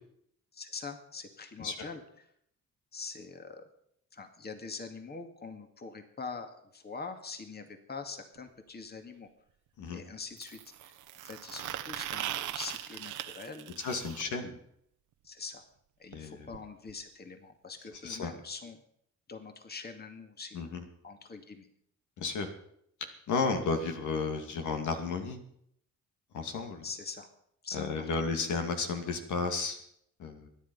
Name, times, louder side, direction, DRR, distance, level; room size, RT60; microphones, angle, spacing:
voice 1, 0.5-2.0 2.9-3.6 4.1-9.3 9.9-10.9 11.2-13.7 15.2-15.6 16.0-18.8 19.3-20.6 21.0-21.7 26.8-27.3 27.6-28.1, left 4 dB, 35° left, 6 dB, 2.3 m, -43 dB
sound 1, 8.4-8.5 10.4-14.2 16.1-16.2 16.5-16.6 16.9-17.0 17.9-18.0, right 13 dB, 85° right, 1.2 m, -40 dB
voice 2, 13.8-14.6 16.1-16.5 18.0-18.3 20.5-20.8 22.2-22.5 23.3-25.4 26.3-26.8 27.7-29.8 30.2-30.5, left 4 dB, 75° left, 5 dB, 2.5 m, -33 dB
23.5 x 10.5 x 5.5 m, 0.70 s
cardioid pair, 90°, 30 cm